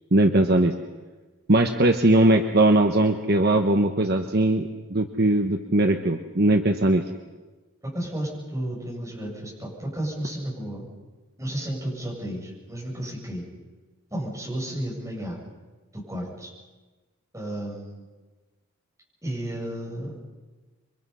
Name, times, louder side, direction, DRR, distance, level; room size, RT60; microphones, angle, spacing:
voice 1, 0.1-0.7 1.5-7.0, right 1 dB, 45° right, 5 dB, 1.1 m, -20 dB
voice 2, 7.9-10.8 11.4-13.5 14.1-15.4 15.9-16.5 17.3-18.0 19.2-20.1, right 1 dB, 15° right, -4 dB, 7.9 m, -32 dB
28.5 x 24.0 x 5.6 m, 1.2 s
head